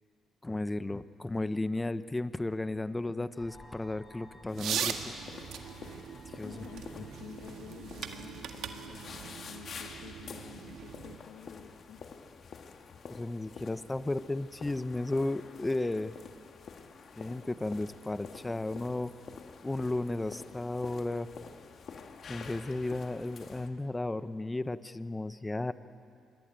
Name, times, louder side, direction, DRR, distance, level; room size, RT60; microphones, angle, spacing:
voice 1, 0.4-5.1 6.3-6.6 13.1-16.1 17.2-19.1 19.6-21.3 22.3-25.7, left 2 dB, 15° left, 13 dB, 0.9 m, -34 dB
sound 1, 3.3-10.1, left 1 dB, 35° left, 6.7 m, -58 dB
sound 2, 4.5-23.7, left 5 dB, 55° left, 1.9 m, -48 dB
sound 3, 4.5-11.2, right 8 dB, 80° right, 1.7 m, -40 dB
voice 2, 6.4-12.0, left 7 dB, 85° left, 3 dB, 1.4 m, -50 dB
27.0 x 22.0 x 9.0 m, 2.5 s
cardioid pair, 90°, 0 cm